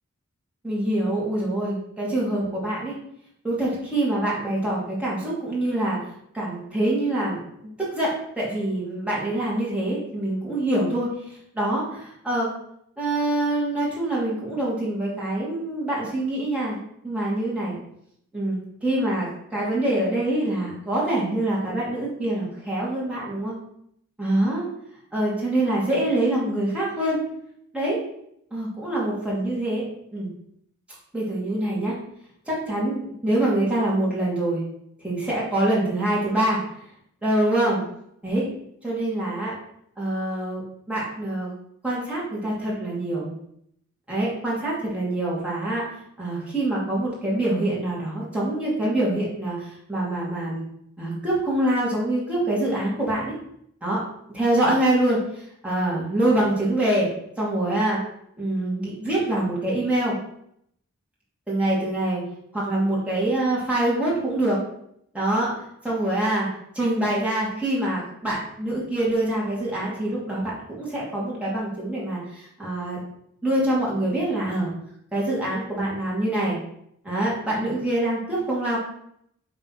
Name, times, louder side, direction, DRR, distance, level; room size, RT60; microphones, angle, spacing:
voice 1, 0.6-2.9 3.4-6.0 6.3-12.5 13.0-16.8 17.0-17.8 18.3-23.5 24.2-24.6 25.1-27.2 27.7-28.0 28.5-29.8 30.1-30.3 31.1-31.9 32.5-34.6 35.0-36.6 37.2-37.8 38.2-38.5 38.8-39.5 40.0-41.5 41.8-43.3 44.1-45.8 46.2-50.6 51.0-53.4 53.8-54.0 54.3-57.1 57.4-58.0 58.4-60.2 61.5-62.2 62.5-64.6 65.1-65.5 65.8-73.0 73.4-74.7 75.1-76.6 77.0-78.8, right 1 dB, 5° right, -7 dB, 2.3 m, -25 dB
6.9 x 3.6 x 5.6 m, 0.72 s
head